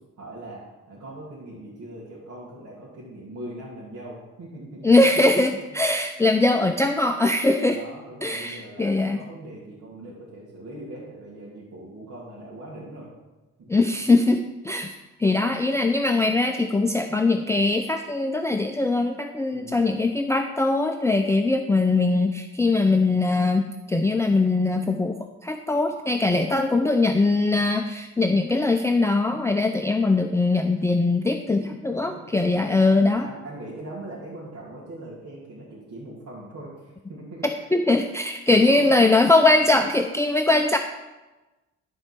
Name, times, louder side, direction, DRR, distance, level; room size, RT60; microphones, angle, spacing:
voice 1, 0.2-5.0 7.6-13.1 13.6-13.8 19.5-20.0 31.5-37.7 38.5-38.9, right 1 dB, 70° right, -7 dB, 2.6 m, -40 dB
voice 2, 4.8-7.8 8.2-9.2 13.7-33.3 37.7-40.8, left 2 dB, 10° left, 5 dB, 0.5 m, -21 dB
13.0 x 4.6 x 6.0 m, 1.1 s
cardioid pair, 90°, 30 cm